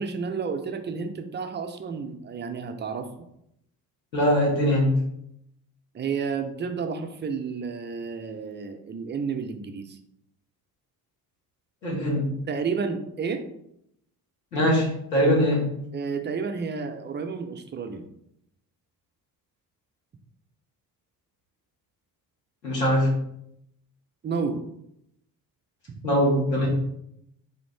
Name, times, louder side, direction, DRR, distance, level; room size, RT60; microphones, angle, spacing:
voice 1, 0.0-3.1 5.9-10.0 12.5-13.4 15.9-18.0 24.2-24.6, right 5 dB, 20° right, 6 dB, 0.5 m, -31 dB
voice 2, 4.1-4.9 11.8-12.3 14.5-15.6 22.6-23.1 26.0-26.7, equal, 85° left, -5 dB, 1.3 m, -22 dB
4.3 x 2.5 x 3.4 m, 0.76 s
figure-of-eight pair, 45°, 49 cm